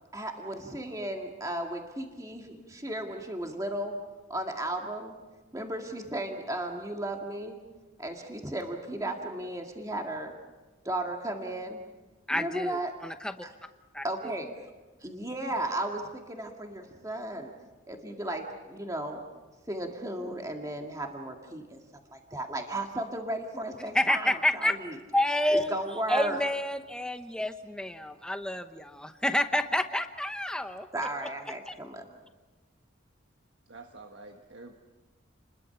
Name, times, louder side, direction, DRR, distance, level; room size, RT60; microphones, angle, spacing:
voice 1, 0.1-3.9 4.3-5.1 5.5-7.6 8.0-10.3 10.8-11.8 12.3-12.9 13.4-13.5 14.0-14.5 15.0-17.5 17.9-19.2 19.7-21.8 22.1-24.9 25.5-26.4 30.9-32.0, right 1 dB, 15° right, 2 dB, 1.9 m, -35 dB
voice 2, 12.3-13.5 13.9-14.3 23.9-24.8 25.1-25.7 26.1-30.9 31.7-31.8, left 1 dB, 5° left, 7 dB, 1.0 m, -29 dB
voice 3, 33.7-34.7, right 3 dB, 65° right, 4 dB, 1.4 m, -47 dB
30.0 x 21.5 x 5.9 m, 1.2 s
head